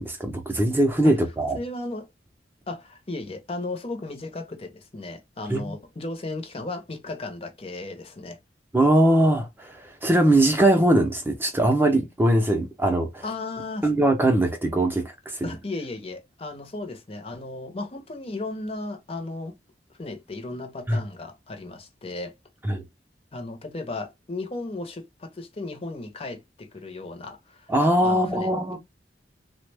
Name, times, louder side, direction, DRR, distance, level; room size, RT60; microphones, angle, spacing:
voice 1, 0.0-1.6 5.5-5.7 8.7-13.3 13.8-15.5 20.9-21.0 22.6-22.8 27.7-28.8, right 1 dB, 10° right, 0.5 m, -21 dB
voice 2, 1.5-2.1 2.7-8.4 13.2-13.9 15.4-19.5 19.9-22.3 23.3-27.7 28.0-28.8, left 2 dB, 35° left, 0.6 m, -35 dB
3.3 x 2.1 x 3.3 m
head